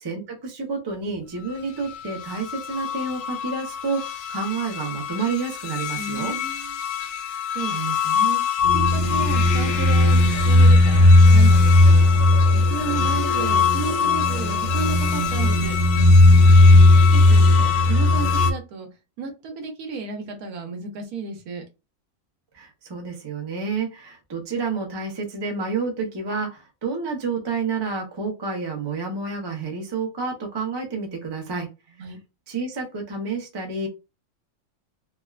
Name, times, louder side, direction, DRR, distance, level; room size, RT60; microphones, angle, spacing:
voice 1, 0.0-6.3 22.5-31.7 32.5-33.9, right 4 dB, 30° right, 2 dB, 0.4 m, -29 dB
sound 1, 2.3-18.5, left 2 dB, 65° left, 0.9 m, -17 dB
voice 2, 5.9-6.8 7.5-8.4 8.7-12.0 12.5-15.8 17.1-18.9 19.2-21.6 32.0-32.2, right 5 dB, 75° right, 4 dB, 1.2 m, -33 dB
3.4 x 2.2 x 2.3 m, 0.27 s
omnidirectional pair, 1.6 m